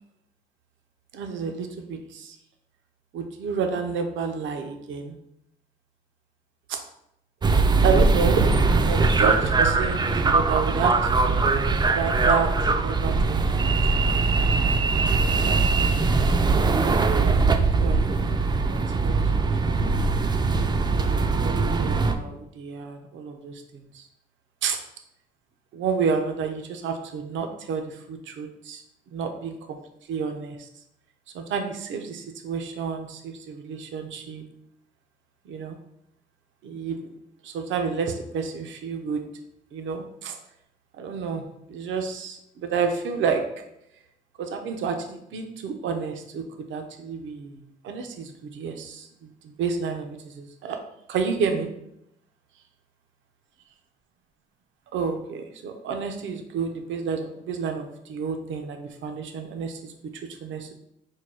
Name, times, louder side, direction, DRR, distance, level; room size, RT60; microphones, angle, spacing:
voice 1, 1.1-2.4 3.1-5.2 6.7-6.8 7.8-11.5 11.9-13.4 13.6-13.7 15.2-16.4 17.4-19.3 19.8-20.1 21.3-24.0 24.6-24.8 25.7-28.8 29.1-29.8 30.1-30.7 31.3-34.4 35.5-35.8 36.6-37.1 37.4-39.2 39.7-40.4 41.0-43.4 44.4-50.8 51.1-51.7 54.9-60.7, right 5 dB, 75° right, 5 dB, 0.6 m, -30 dB
sound 1, 7.4-22.2, right 3 dB, 20° right, 0.4 m, -21 dB
4.5 x 2.3 x 4.6 m, 0.79 s
cardioid pair, 90°, 20 cm